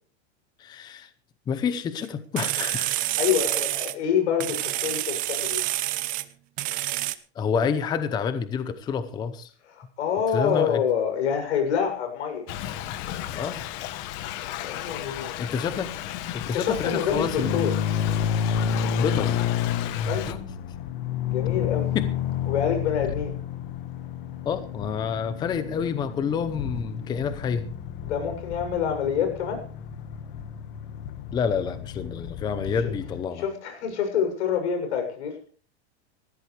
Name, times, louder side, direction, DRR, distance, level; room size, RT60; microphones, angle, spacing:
voice 1, 0.6-1.1 1.5-3.1 7.3-9.5 10.3-10.8 13.3-13.6 15.2-17.5 18.9-19.4 20.2-20.4 21.9-22.1 24.4-27.7 31.3-33.4, left 6 dB, 10° left, 11 dB, 0.7 m, -28 dB
sound 1, 2.0-2.1 2.4-4.0 4.4-6.3 6.6-7.2, right 17 dB, 25° right, 0.7 m, -28 dB
voice 2, 3.2-5.6 9.7-12.5 14.6-15.4 16.5-17.7 20.1-20.3 21.3-21.9 22.5-23.4 28.0-29.7 32.7-32.9 33.3-35.4, left 8 dB, 85° left, 5 dB, 7.2 m, -27 dB
Thunder / Rain, 12.5-20.3, left 12 dB, 35° left, 1.1 m, -34 dB
sound 2, 17.4-33.2, left 8 dB, 50° left, 1.6 m, -30 dB
20.0 x 15.5 x 3.3 m, 0.42 s
supercardioid pair, 170°, 33 cm